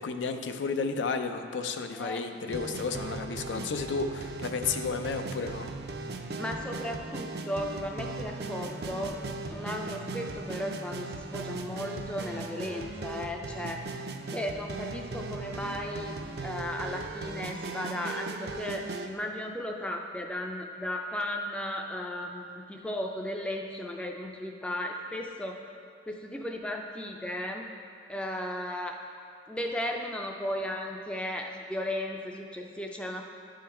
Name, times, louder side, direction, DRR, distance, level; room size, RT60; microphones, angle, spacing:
voice 1, 0.0-5.7, left 4 dB, 85° left, 7 dB, 0.5 m, -32 dB
sound 1, 2.5-19.1, right 3 dB, 60° right, 0.5 m, -38 dB
voice 2, 6.3-9.2 9.5-13.8 14.3-25.6 26.1-27.7 28.1-29.0 29.5-33.2, left 1 dB, 5° left, 1 dB, 0.4 m, -35 dB
11.5 x 3.8 x 4.3 m, 2.4 s
head